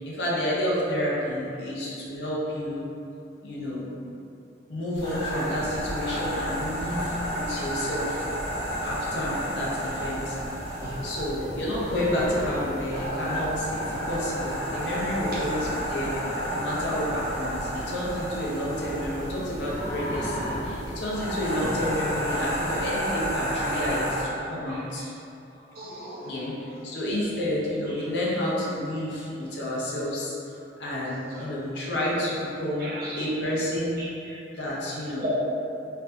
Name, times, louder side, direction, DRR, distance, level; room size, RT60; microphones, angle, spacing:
voice 1, 0.0-2.8 3.4-3.8 4.7-8.2 8.8-10.4 11.0-16.1 16.5-25.0 26.2-30.4 30.8-34.1 34.6-35.3, left 1 dB, 70° left, -6 dB, 0.7 m, -30 dB
sound 1, 4.9-24.2, equal, 40° left, 1.3 m, -31 dB
voice 2, 25.7-26.4 27.1-27.3 27.9-28.0 29.0-29.3 31.0-31.5 31.7-31.9 32.8-33.3 34.0-34.4 35.2-35.4, equal, 60° right, -8 dB, 0.7 m, -36 dB
4.4 x 2.7 x 2.5 m, 2.7 s
head